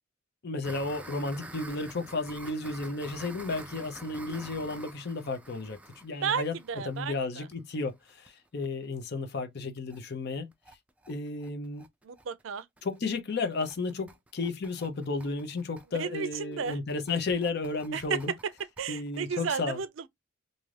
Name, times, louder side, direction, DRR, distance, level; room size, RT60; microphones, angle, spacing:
voice 1, 0.4-6.5 6.9-10.5 11.1-11.9 12.8-18.3 18.9-19.8, left 3 dB, 55° left, 0.6 m, -33 dB
sound 1, 0.6-8.3 8.6-8.7 9.0-9.1 9.4-9.5 9.8-10.0 10.3-19.4, right 1 dB, 5° right, 0.3 m, -48 dB
voice 2, 6.2-7.5 12.0-12.7 16.0-16.8 17.9-18.2 18.8-20.1, right 6 dB, 70° right, 0.4 m, -33 dB
2.6 x 2.4 x 3.1 m
head